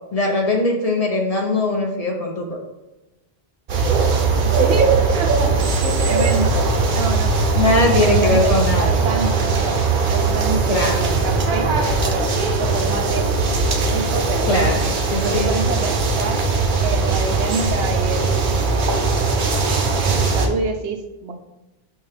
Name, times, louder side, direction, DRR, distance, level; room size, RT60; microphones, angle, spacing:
voice 1, 0.1-2.6 7.5-8.9 10.7-11.2 14.4-15.5, left 2 dB, 45° left, 1 dB, 0.6 m, -21 dB
sound 1, 3.7-20.5, right 3 dB, 55° right, 0.7 m, -19 dB
voice 2, 4.3-4.9 5.2-6.5 6.9-9.7 10.0-11.7 12.0-12.3 12.6-13.3 13.8-14.7 15.1-16.4 16.8-19.4 20.0-21.3, right 4 dB, 85° right, 3 dB, 0.9 m, -27 dB
4.6 x 2.3 x 4.8 m, 1.0 s
omnidirectional pair, 1.1 m